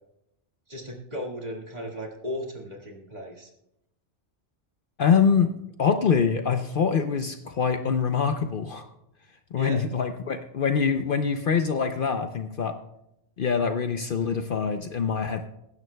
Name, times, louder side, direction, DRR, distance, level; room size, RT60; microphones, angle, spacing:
voice 1, 0.7-3.5 9.6-9.8, equal, 40° right, 0 dB, 2.0 m, -35 dB
voice 2, 5.0-5.5 5.8-8.9 9.5-12.8 13.4-15.5, left 6 dB, 55° left, 8 dB, 0.7 m, -24 dB
22.0 x 10.5 x 2.2 m, 0.83 s
omnidirectional pair, 1.2 m